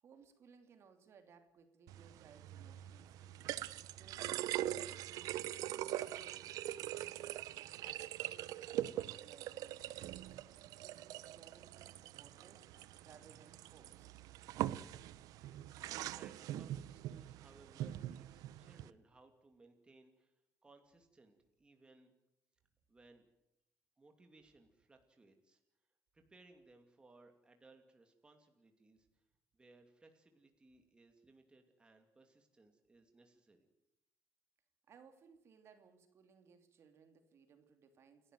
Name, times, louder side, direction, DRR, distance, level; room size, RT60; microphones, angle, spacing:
voice 1, 0.0-3.4 3.8-6.3 6.8-7.3 7.7-10.4 10.8-12.7 13.0-14.1 34.9-38.3, right 6 dB, 45° right, 7 dB, 2.9 m, -64 dB
sound 1, 1.9-18.9, right 13 dB, 80° right, 0.9 m, -43 dB
voice 2, 15.9-22.1 22.9-23.3 24.0-25.6 26.1-29.2 29.5-33.7, right 2 dB, 15° right, 4 dB, 2.7 m, -64 dB
29.0 x 13.0 x 9.3 m, 0.87 s
cardioid pair, 145°, 6 cm